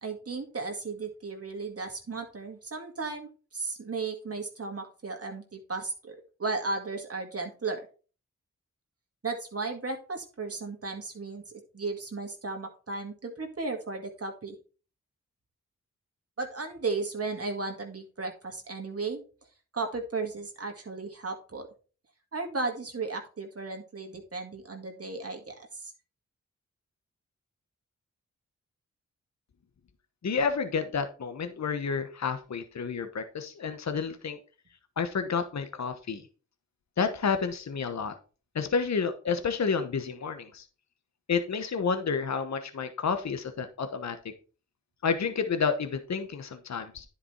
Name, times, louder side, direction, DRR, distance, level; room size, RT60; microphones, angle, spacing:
voice 1, 0.0-7.8 9.2-11.4 11.7-14.6 16.4-19.2 19.7-21.7 22.3-25.9, right 3 dB, 45° right, 3 dB, 2.0 m, -35 dB
voice 2, 30.2-34.4 35.0-36.2 37.0-38.1 38.5-40.6 41.3-44.2 45.0-47.0, left 5 dB, 55° left, 9 dB, 1.1 m, -30 dB
10.0 x 5.1 x 4.5 m, 0.37 s
cardioid pair, 45°, 32 cm